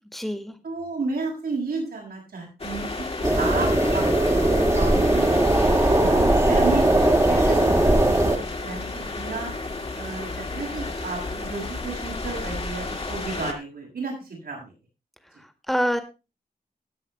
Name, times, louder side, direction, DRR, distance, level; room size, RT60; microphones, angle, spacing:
voice 1, 0.1-0.6 15.4-16.0, equal, ahead, 7 dB, 2.0 m, -26 dB
voice 2, 0.6-3.1 3.4-5.4 5.9-9.5 9.9-14.7, right 3 dB, 85° right, -1 dB, 7.3 m, -32 dB
sound 1, 2.6-13.5, left 3 dB, 40° left, 2.2 m, -32 dB
sound 2, 3.2-8.4, right 1 dB, 20° right, 1.8 m, -19 dB
18.0 x 7.9 x 3.4 m, 0.30 s
wide cardioid pair, 95°, 16 cm